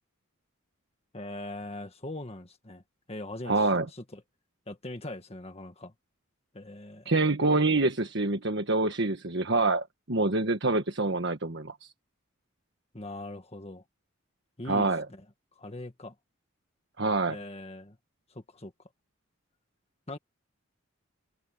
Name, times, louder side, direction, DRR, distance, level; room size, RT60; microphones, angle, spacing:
voice 1, 1.1-2.8 3.1-4.2 4.7-5.9 6.5-7.1 12.9-13.8 14.6-15.2 15.6-16.1 17.3-18.0 18.3-18.7 20.1-20.2, left 1 dB, 30° left, 1.7 m, -41 dB
voice 2, 3.5-3.9 7.0-11.9 14.7-15.1 17.0-17.4, right 3 dB, 55° right, 1.5 m, -26 dB
head